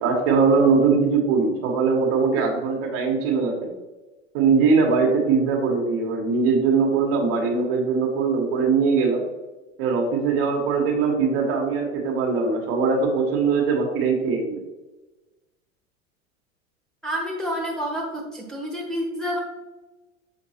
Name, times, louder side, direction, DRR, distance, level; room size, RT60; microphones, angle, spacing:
voice 1, 0.0-3.7 4.3-9.3 9.8-14.6, right 5 dB, 50° right, 0 dB, 1.6 m, -21 dB
voice 2, 17.0-19.4, equal, ahead, -3 dB, 1.5 m, -29 dB
7.2 x 5.2 x 2.9 m, 1.1 s
figure-of-eight pair, 85°, 41 cm